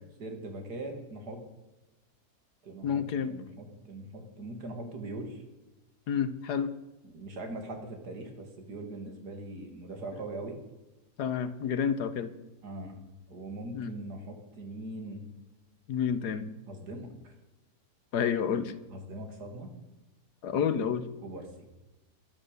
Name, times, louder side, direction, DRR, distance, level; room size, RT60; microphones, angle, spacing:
voice 1, 0.2-1.4 2.6-5.4 7.0-10.6 12.6-13.0 13.3-15.3 16.7-17.3 18.9-19.7 21.2-21.7, right 2 dB, 75° right, 5 dB, 2.7 m, -41 dB
voice 2, 2.8-3.3 6.1-6.7 11.2-12.3 13.7-14.0 15.9-16.5 18.1-18.7 20.4-21.1, left 7 dB, 75° left, 13 dB, 1.5 m, -29 dB
11.5 x 11.5 x 6.7 m, 1.1 s
omnidirectional pair, 1.8 m